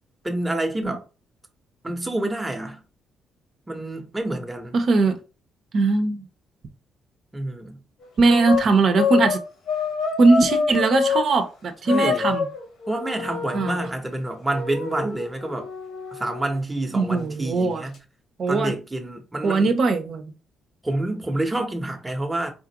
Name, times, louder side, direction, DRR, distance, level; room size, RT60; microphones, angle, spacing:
voice 1, 0.2-1.0 1.8-2.8 3.7-4.7 7.3-7.8 11.8-12.3 12.9-15.7 16.1-18.0 18.5-19.7 20.8-22.5, right 1 dB, 15° right, 0.9 m, -28 dB
voice 2, 4.7-5.2 5.7-6.2 8.2-9.4 10.2-12.5 13.5-13.8 16.9-17.8 18.4-18.7 19.4-20.2, right 3 dB, 55° right, 0.8 m, -20 dB
sound 1, 8.0-11.3 11.9-13.9 14.5-16.5, left 5 dB, 70° left, 1.2 m, -26 dB
4.2 x 2.5 x 2.9 m
cardioid pair, 90°, 0 cm